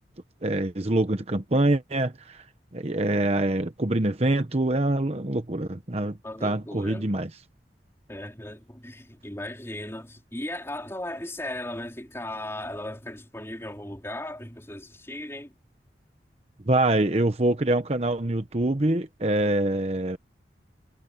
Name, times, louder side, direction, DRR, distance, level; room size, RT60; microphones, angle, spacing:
voice 1, 0.4-2.4 2.7-7.3 16.7-20.2, right 1 dB, 35° right, 1.0 m, -25 dB
voice 2, 6.2-7.1 8.1-15.5, left 1 dB, 15° left, 4.5 m, -37 dB
head